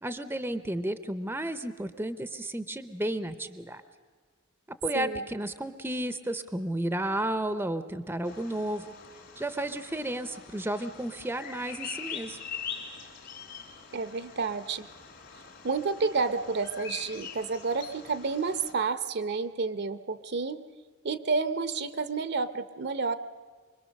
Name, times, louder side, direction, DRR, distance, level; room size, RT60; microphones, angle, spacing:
voice 1, 0.0-3.8 4.8-8.9 9.4-12.4, right 1 dB, 10° right, 11 dB, 0.7 m, -32 dB
Bird vocalization bird call bird song, 8.2-18.7, left 6 dB, 55° left, 2.8 m, -43 dB
voice 2, 13.9-14.9 15.6-20.6 21.0-23.1, right 4 dB, 55° right, 12 dB, 0.8 m, -30 dB
24.5 x 22.0 x 6.5 m, 1.5 s
head